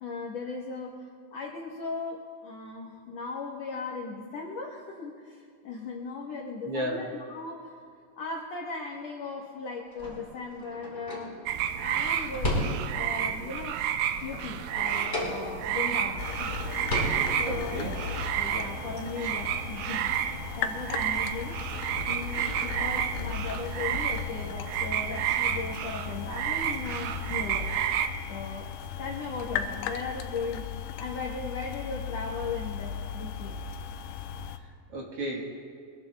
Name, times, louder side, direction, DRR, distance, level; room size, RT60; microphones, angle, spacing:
voice 1, 0.0-7.7 8.2-11.4 11.8-13.8 14.2-16.5 17.4-20.1 20.6-21.6 22.0-27.7 28.3-33.6, left 4 dB, 70° left, -1 dB, 1.6 m, -37 dB
voice 2, 6.6-7.1 17.5-17.9 19.2-19.3 34.6-35.4, right 1 dB, 60° right, -1 dB, 1.6 m, -34 dB
sound 1, 9.9-13.2 13.6-15.9 16.2-16.3 16.6-17.8, equal, 15° left, 4.0 m, -34 dB
sound 2, 11.5-28.1, right 10 dB, 80° right, 2.5 m, -31 dB
sound 3, 16.2-34.6, left 7 dB, 90° left, 2.6 m, -37 dB
24.0 x 21.5 x 2.2 m, 2.2 s
omnidirectional pair, 4.5 m